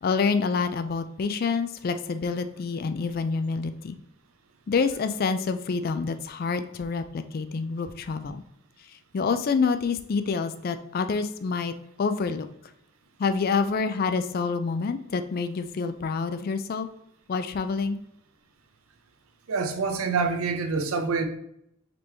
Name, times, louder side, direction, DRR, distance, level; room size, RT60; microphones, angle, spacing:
voice 1, 0.0-4.0 4.7-8.4 9.1-12.5 13.2-16.9 17.3-18.0, left 5 dB, 45° left, 10 dB, 0.3 m, -27 dB
voice 2, 19.5-21.3, right 4 dB, 90° right, 6 dB, 0.6 m, -26 dB
5.0 x 3.0 x 3.4 m, 0.74 s
head